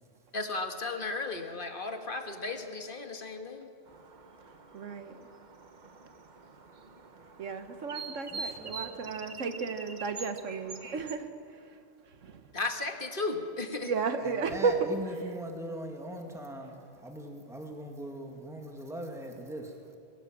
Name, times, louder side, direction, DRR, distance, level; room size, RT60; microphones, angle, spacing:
voice 1, 0.3-3.7 12.5-13.9, left 3 dB, 45° left, 5 dB, 1.7 m, -35 dB
sound 1, 3.9-11.1, right 4 dB, 40° right, 1.1 m, -45 dB
voice 2, 4.7-5.3 7.4-11.8 12.1-12.4 13.8-15.3, right 5 dB, 85° right, 8 dB, 1.5 m, -33 dB
voice 3, 8.3-9.0 14.2-16.8 17.0-19.7, right 1 dB, ahead, 2 dB, 1.9 m, -40 dB
22.0 x 16.5 x 7.5 m, 2.5 s
omnidirectional pair, 1.2 m